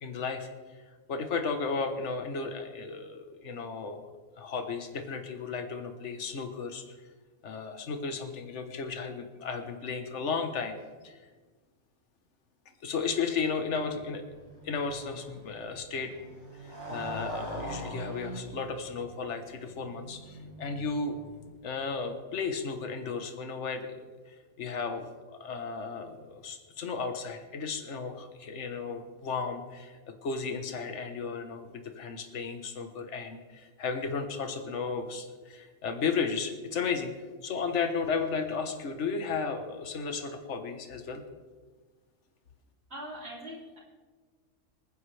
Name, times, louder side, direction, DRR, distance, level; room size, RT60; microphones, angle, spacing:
voice 1, 0.0-0.5 1.1-4.1 4.4-6.8 7.4-10.8 11.0-11.2 12.8-14.2 14.6-16.1 16.6-21.2 21.6-37.1 37.4-41.2, left 5 dB, 70° left, 7 dB, 1.5 m, -34 dB
Motorcycle, 13.6-21.7, right 1 dB, 75° right, 3.4 m, -43 dB
voice 2, 42.9-43.8, equal, 60° right, -10 dB, 3.3 m, -41 dB
27.0 x 9.8 x 3.3 m, 1.4 s
omnidirectional pair, 1.3 m